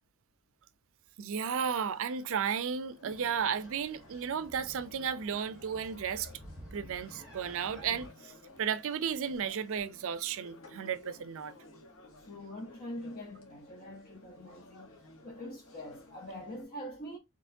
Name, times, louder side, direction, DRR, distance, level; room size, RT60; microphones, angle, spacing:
voice 1, 1.2-6.3 6.7-8.3 8.6-11.5, right 7 dB, 60° right, 0.4 m, -34 dB
sound 1, 1.4-16.7, left 2 dB, 65° left, 1.1 m, -56 dB
sound 2, 3.1-8.1, right 1 dB, 5° right, 1.4 m, -51 dB
voice 2, 12.3-14.9 15.2-17.2, equal, 45° left, 0.9 m, -44 dB
4.3 x 3.0 x 2.7 m
head